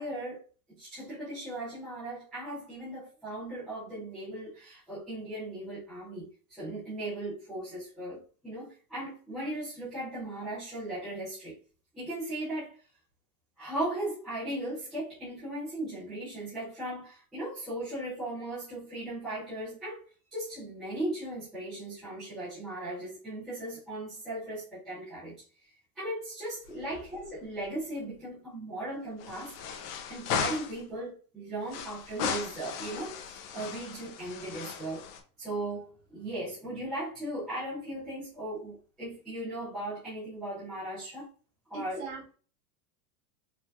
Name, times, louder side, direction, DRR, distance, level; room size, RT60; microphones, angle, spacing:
voice 1, 0.0-11.6 11.9-12.8 13.6-20.0 20.3-29.8 30.1-35.0 35.4-41.3 41.7-42.0, right 1 dB, ahead, 0.3 m, -37 dB
sound 1, 26.6-27.4 27.6-27.7 29.2-30.8 31.7-35.2, left 7 dB, 85° left, 0.8 m, -36 dB
voice 2, 41.7-42.4, right 5 dB, 55° right, 1.4 m, -40 dB
4.4 x 2.3 x 2.4 m
supercardioid pair, 180°, 46 cm